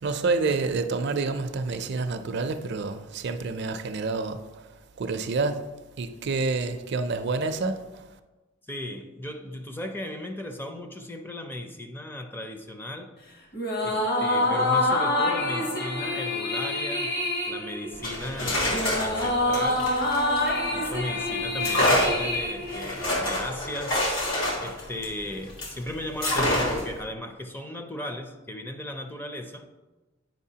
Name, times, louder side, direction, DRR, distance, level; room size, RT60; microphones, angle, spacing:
voice 1, 0.0-4.7 5.0-5.7 6.0-8.0, right 3 dB, 55° right, 0.4 m, -28 dB
voice 2, 8.7-13.1 13.8-17.2 17.5-19.9 20.7-24.0 24.6-29.7, left 1 dB, 10° left, 0.4 m, -36 dB
sound 1, 13.5-23.2, left 1 dB, 50° left, 1.0 m, -26 dB
sound 2, 17.9-21.0 21.6-25.8 26.2-27.0, left 1 dB, 70° left, 1.5 m, -27 dB
9.2 x 5.3 x 2.8 m
head